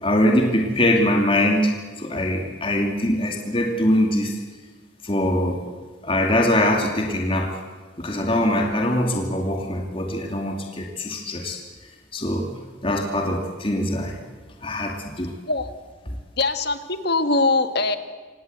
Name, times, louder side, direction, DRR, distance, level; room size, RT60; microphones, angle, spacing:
voice 1, 0.0-4.4 5.0-5.6 6.0-7.6 8.0-11.6 12.1-12.5 12.8-14.2 14.6-15.3, left 1 dB, 30° left, 2 dB, 2.4 m, -22 dB
voice 2, 16.4-18.0, left 3 dB, 60° left, 10 dB, 1.7 m, -22 dB
27.0 x 18.0 x 8.1 m, 1.4 s
head